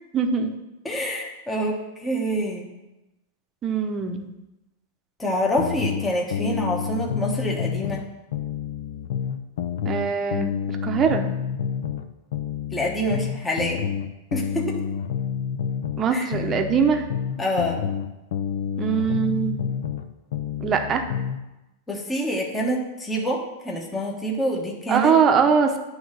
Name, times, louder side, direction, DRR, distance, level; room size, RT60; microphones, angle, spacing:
voice 1, 0.1-0.6 3.6-4.3 9.8-11.3 16.0-17.0 18.8-19.6 20.6-21.0 24.9-25.8, right 6 dB, 25° right, 5 dB, 0.8 m, -22 dB
voice 2, 0.8-2.7 5.2-8.0 12.7-13.8 14.3-14.9 16.1-16.3 17.4-17.8 21.9-25.2, equal, 10° left, -1 dB, 1.0 m, -26 dB
sound 1, 5.6-8.1 8.3-12.1 12.3-16.1 16.3-20.1 20.3-21.4, left 8 dB, 75° left, 0.5 m, -28 dB
9.3 x 3.2 x 6.3 m, 1.0 s
supercardioid pair, 140°, 0 cm